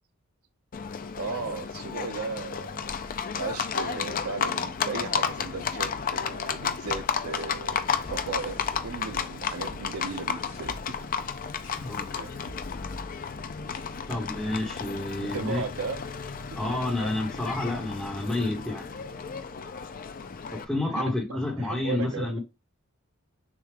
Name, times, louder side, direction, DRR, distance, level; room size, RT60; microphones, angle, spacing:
Livestock farm animals working animals, 0.7-20.6, left 6 dB, 40° left, 0.4 m, -33 dB
voice 1, 1.2-2.9 3.4-11.1 12.1-12.4 15.2-16.2 20.9-22.4, right 4 dB, 80° right, 0.5 m, -36 dB
sound 1, 2.8-7.4 8.0-11.1 11.6-11.9 12.4-14.0, left 1 dB, 60° left, 1.9 m, -48 dB
voice 2, 11.8-12.3 14.1-15.6 16.6-18.9 20.5-22.4, left 2 dB, 5° left, 1.1 m, -30 dB
6.6 x 2.3 x 3.3 m
head